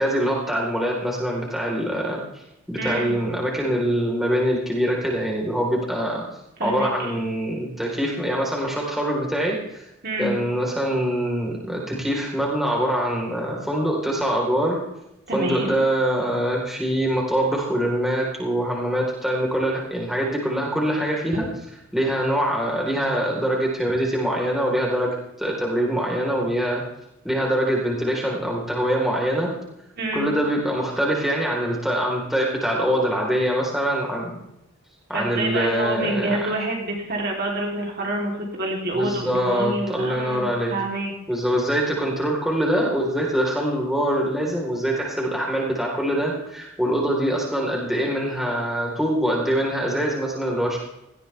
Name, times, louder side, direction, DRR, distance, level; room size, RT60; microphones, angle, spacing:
voice 1, 0.0-6.2 6.6-9.9 10.2-14.8 15.3-21.5 21.9-26.8 27.2-29.5 30.1-34.4 35.1-36.5 38.9-40.7 41.3-50.8, equal, ahead, -3 dB, 4.0 m, -24 dB
voice 2, 2.8-3.1 6.6-7.1 10.0-10.3 15.3-15.7 30.0-30.3 35.1-41.1, right 1 dB, 45° right, -1 dB, 3.4 m, -27 dB
18.5 x 16.0 x 3.5 m, 0.85 s
head